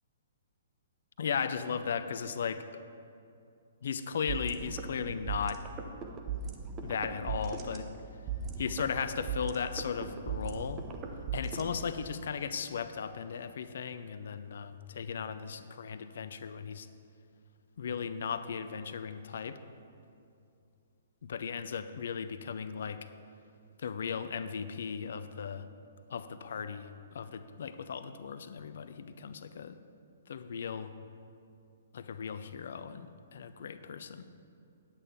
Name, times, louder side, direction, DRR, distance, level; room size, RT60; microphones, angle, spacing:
voice 1, 1.2-2.7 3.8-5.6 6.8-7.9 8.6-10.8 11.3-16.9 17.8-19.6 21.2-23.0 23.8-25.7 26.1-29.8 30.3-30.9 31.9-34.2, left 6 dB, 55° left, 11 dB, 0.5 m, -36 dB
sound 1, 4.3-12.3, right 5 dB, 20° right, 0.8 m, -38 dB
9.9 x 8.6 x 4.5 m, 2.5 s
figure-of-eight pair, 120°, 0 cm